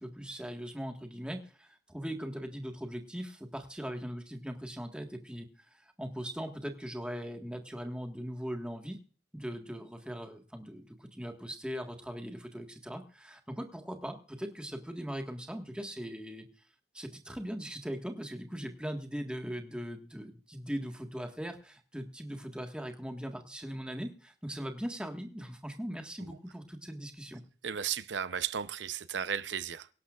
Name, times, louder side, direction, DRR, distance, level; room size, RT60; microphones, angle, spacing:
voice 1, 0.0-9.0 9.3-16.4 16.9-27.4, equal, 5° right, 1.5 m, -40 dB
voice 2, 27.6-29.9, right 8 dB, 90° right, 0.7 m, -34 dB
24.0 x 11.5 x 2.4 m
head